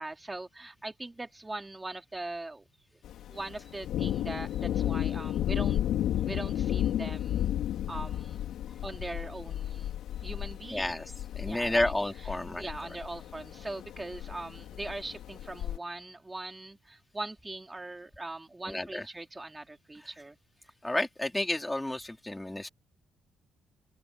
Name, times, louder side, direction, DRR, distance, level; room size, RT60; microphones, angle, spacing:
voice 1, 0.0-2.6 3.3-5.8 6.2-7.5 7.9-8.4 8.8-9.9 10.2-11.1 11.4-11.9 12.6-20.4, right 2 dB, 15° right, 3.6 m, -41 dB
Thunder, 3.0-15.8, left 11 dB, 80° left, 4.6 m, -33 dB
voice 2, 10.7-11.0 11.3-12.7 18.7-19.0 20.8-22.7, left 1 dB, 10° left, 3.8 m, -31 dB
open air
cardioid pair, 90°, 0 cm